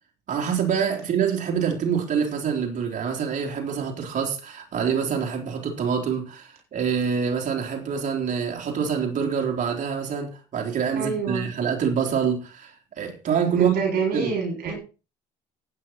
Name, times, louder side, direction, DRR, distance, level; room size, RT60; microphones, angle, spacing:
voice 1, 0.3-13.7 14.1-14.3, right 7 dB, 50° right, 3.6 m, -26 dB
voice 2, 11.0-11.5 13.6-14.8, right 5 dB, 65° right, 7.1 m, -26 dB
15.5 x 9.3 x 4.4 m
cardioid pair, 110°, 17 cm